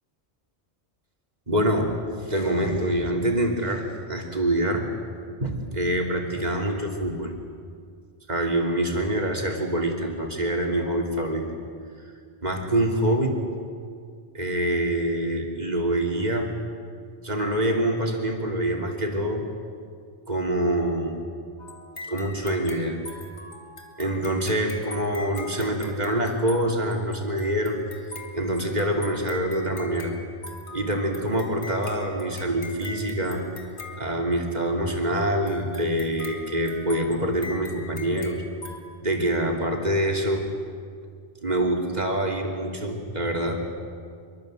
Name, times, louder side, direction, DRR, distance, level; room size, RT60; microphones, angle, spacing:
voice 1, 1.5-1.9 2.2-4.9 5.4-7.3 8.3-11.5 12.4-13.3 14.3-16.5 17.2-19.4 20.3-21.2 22.1-23.0 24.0-27.8 28.3-30.1 30.7-33.5 34.0-38.4 39.0-40.5 41.4-43.6, right 1 dB, 40° right, 2 dB, 3.2 m, -25 dB
sound 1, 21.6-34.7 35.5-38.8, left 2 dB, 90° left, 2.7 m, -42 dB
25.0 x 23.0 x 7.7 m, 2.2 s
omnidirectional pair, 1.1 m